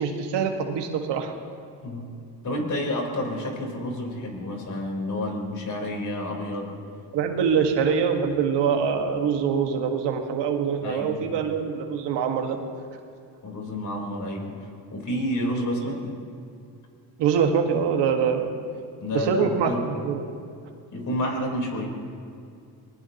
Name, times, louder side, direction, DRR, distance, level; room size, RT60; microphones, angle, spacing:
voice 1, 0.0-1.3 7.1-12.6 17.2-18.5 19.1-19.7 20.0-20.2, right 7 dB, 90° right, 4 dB, 1.7 m, -24 dB
voice 2, 1.8-2.1 2.4-6.7 10.8-11.4 13.4-14.5 14.9-16.2 19.0-19.9 20.9-21.9, left 1 dB, 45° left, 0 dB, 4.1 m, -29 dB
24.5 x 19.5 x 3.0 m, 2.4 s
cardioid pair, 100°, 41 cm